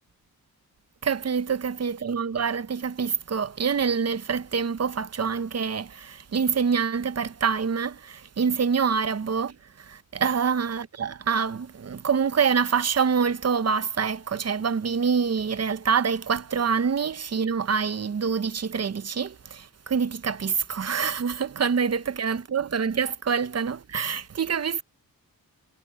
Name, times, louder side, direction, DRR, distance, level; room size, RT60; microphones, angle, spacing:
voice 1, 1.0-24.8, right 6 dB, 45° right, 0.9 m, -26 dB
cardioid pair, 75°, 36 cm